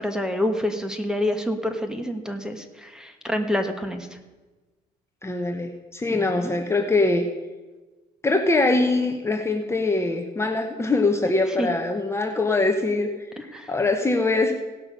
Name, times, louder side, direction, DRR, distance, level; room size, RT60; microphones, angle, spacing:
voice 1, 0.0-4.1 6.1-6.6 11.6-11.7 13.4-13.7, left 1 dB, 5° right, 7 dB, 1.3 m, -27 dB
voice 2, 5.2-7.2 8.2-13.1 13.5-14.5, left 2 dB, 15° left, 3 dB, 1.0 m, -23 dB
17.0 x 5.9 x 6.6 m, 1.2 s
cardioid pair, 110°, 17 cm